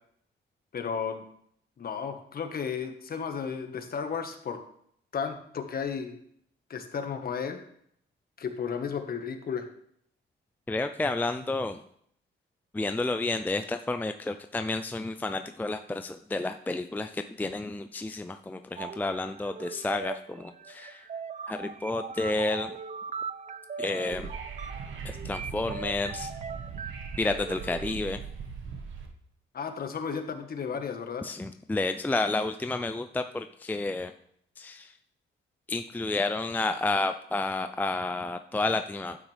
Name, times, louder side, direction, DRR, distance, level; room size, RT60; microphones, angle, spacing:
voice 1, 0.7-1.2 1.8-4.6 5.1-6.2 6.7-7.6 8.4-9.7 29.5-31.3, left 6 dB, 50° left, 6 dB, 1.5 m, -33 dB
voice 2, 10.7-11.8 12.7-21.0 21.5-22.8 23.8-24.3 25.0-26.3 27.2-28.2 31.2-34.1 34.6-34.9 35.7-39.2, left 2 dB, 10° left, 8 dB, 0.5 m, -30 dB
sound 1, 18.8-27.9, right 5 dB, 35° right, 0.7 m, -40 dB
Wind / Subway metro underground, 24.0-29.1, right 5 dB, 75° right, 1.6 m, -40 dB
11.5 x 8.9 x 3.4 m, 0.68 s
cardioid pair, 90°, 20 cm